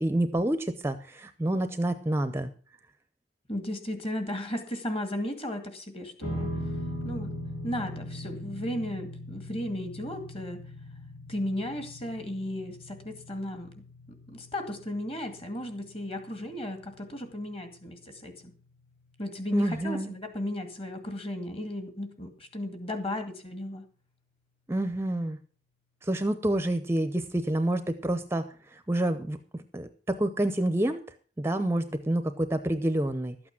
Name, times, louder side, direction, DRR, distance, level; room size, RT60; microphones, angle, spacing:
voice 1, 0.0-2.5 19.5-20.2 24.7-25.4 26.0-31.0 31.4-33.5, right 1 dB, 15° right, 10 dB, 0.6 m, -28 dB
voice 2, 3.5-6.5 7.0-7.3 7.6-10.6 11.3-13.8 14.3-18.5 19.2-23.8, left 1 dB, 30° left, 7 dB, 2.1 m, -35 dB
sound 1, 6.2-18.7, left 1 dB, 75° left, 4.0 m, -40 dB
12.5 x 8.6 x 6.0 m, 0.40 s
head